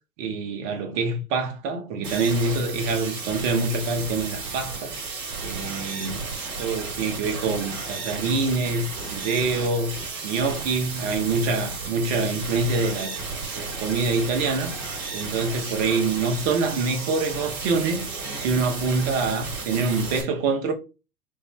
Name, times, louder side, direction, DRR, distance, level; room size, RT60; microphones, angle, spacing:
voice 1, 0.2-5.0 5.4-6.2 6.6-10.0 10.2-13.1 13.5-14.7 15.1-18.1 18.4-20.7, right 3 dB, 40° right, 1.4 m, -25 dB
sound 1, 2.0-20.2, right 4 dB, 20° right, 2.8 m, -33 dB
5.3 x 3.3 x 3.0 m
hypercardioid pair, 120°, 48 cm